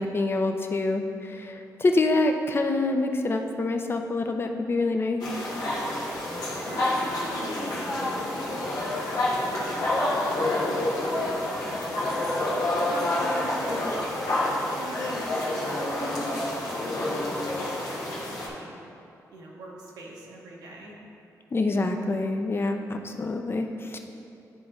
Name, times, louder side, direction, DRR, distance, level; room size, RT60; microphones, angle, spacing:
voice 1, 0.0-5.2 21.5-24.0, left 2 dB, 35° left, 5 dB, 0.6 m, -26 dB
sound 1, 5.2-18.5, left 1 dB, 85° left, 1.4 m, -28 dB
voice 2, 6.7-9.0 9.4-12.0 12.5-14.0 14.5-16.5 16.8-18.8 19.3-21.0, right 1 dB, 90° right, -3 dB, 1.2 m, -42 dB
10.0 x 3.8 x 3.6 m, 2.7 s
cardioid pair, 75°, 7 cm